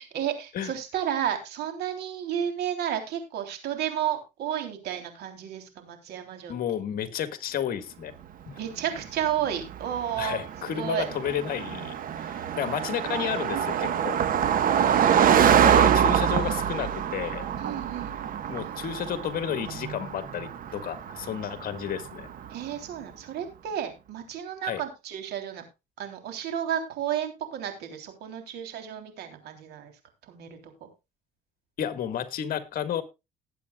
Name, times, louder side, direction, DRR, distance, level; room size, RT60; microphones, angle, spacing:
voice 1, 0.0-6.5 8.6-10.4 10.6-11.1 13.1-14.1 14.7-15.5 17.6-18.2 22.5-25.6 26.0-29.9 30.3-30.9, right 10 dB, 75° right, 3.4 m, -32 dB
voice 2, 6.5-8.1 8.5-8.6 10.2-14.2 15.6-17.4 18.5-22.3 24.6-24.8 31.8-33.0, left 9 dB, 60° left, 1.8 m, -32 dB
Car passing by, 8.9-22.6, right 8 dB, 55° right, 1.3 m, -25 dB
19.0 x 8.4 x 2.4 m
cardioid pair, 110°, 17 cm